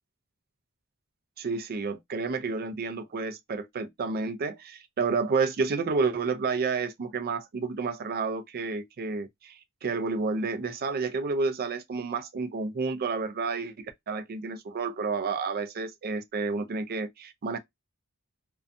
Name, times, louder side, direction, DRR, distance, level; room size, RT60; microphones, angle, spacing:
voice 1, 1.4-17.6, right 4 dB, 45° right, 0.4 m, -30 dB
2.5 x 2.2 x 2.5 m
head